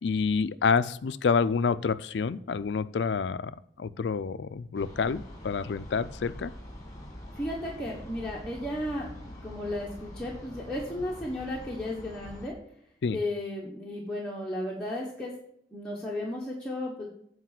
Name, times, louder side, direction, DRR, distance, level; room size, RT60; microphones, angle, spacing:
voice 1, 0.0-3.5 3.8-6.5 13.0-13.2, left 5 dB, 75° left, 14 dB, 0.4 m, -28 dB
sound 1, 4.7-12.5, left 1 dB, 20° left, 1.8 m, -44 dB
voice 2, 7.3-9.1 9.4-12.5 13.1-15.3 15.7-17.1, left 1 dB, 5° left, -5 dB, 1.2 m, -34 dB
8.2 x 4.8 x 5.9 m, 0.69 s
head